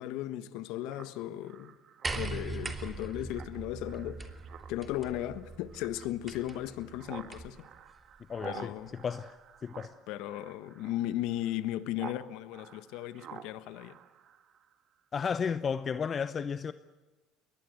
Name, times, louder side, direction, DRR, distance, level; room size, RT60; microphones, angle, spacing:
voice 1, 0.0-1.7 2.1-4.3 4.7-7.7 8.4-8.9 10.1-14.0, left 13 dB, 75° left, 1.2 m, -36 dB
Speech synthesizer, 0.9-12.2 12.5-14.7, right 9 dB, 55° right, 1.9 m, -50 dB
sound 1, 2.0-7.6 8.7-8.8, right 3 dB, 20° right, 2.8 m, -41 dB
voice 2, 8.3-8.7 9.0-9.4 9.6-10.0 15.1-16.7, left 6 dB, 40° left, 0.7 m, -33 dB
22.0 x 19.0 x 8.1 m
supercardioid pair, 80°, 0 cm